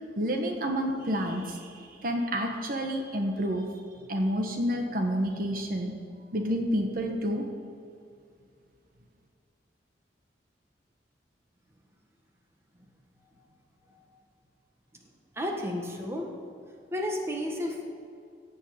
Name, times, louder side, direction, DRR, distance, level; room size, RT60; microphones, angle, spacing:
voice 1, 0.2-3.7 4.1-5.9 6.3-7.5, equal, 55° right, 2 dB, 1.2 m, -29 dB
voice 2, 15.3-16.3 16.9-17.9, left 1 dB, 15° right, 0 dB, 1.5 m, -32 dB
15.5 x 5.4 x 8.8 m, 2.4 s
head